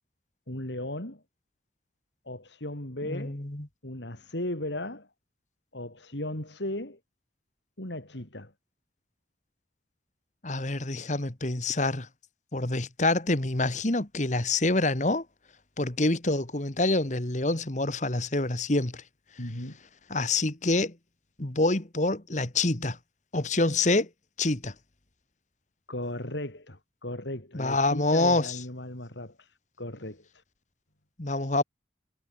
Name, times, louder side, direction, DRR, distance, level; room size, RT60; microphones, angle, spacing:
voice 1, 0.5-1.2 2.3-3.4 3.8-5.1 5.7-7.0 7.8-8.5 19.4-19.8 25.9-30.4, left 1 dB, 75° left, 4.5 m, -36 dB
voice 2, 3.1-3.7 10.4-12.1 12.5-15.2 15.8-19.0 20.1-20.9 21.4-23.0 23.3-24.1 24.4-24.7 27.5-28.6 31.2-31.6, left 2 dB, 40° left, 1.8 m, -26 dB
head